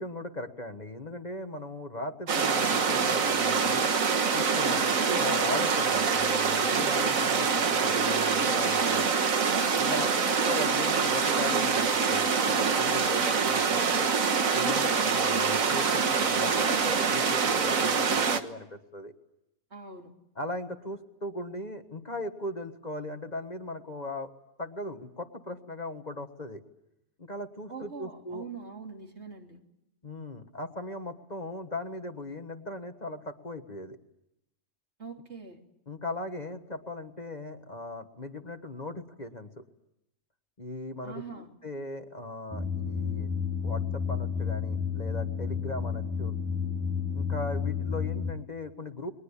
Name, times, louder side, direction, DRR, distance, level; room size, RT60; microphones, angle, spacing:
voice 1, 0.0-3.9 4.3-9.2 9.8-14.1 14.5-19.1 20.3-24.3 24.6-26.6 27.2-28.5 30.0-34.0 35.9-39.6 40.6-43.3 43.6-46.3 47.1-49.1, left 1 dB, 30° left, 6 dB, 1.6 m, -38 dB
sound 1, 2.3-18.4, right 5 dB, 70° right, 1.8 m, -25 dB
voice 2, 19.7-20.1 27.7-29.6 35.0-35.6 41.0-41.5, right 4 dB, 50° right, 2 dB, 3.2 m, -43 dB
sound 2, 42.5-48.3, left 6 dB, 15° right, 1.4 m, -31 dB
30.0 x 22.0 x 8.5 m, 0.85 s
omnidirectional pair, 1.4 m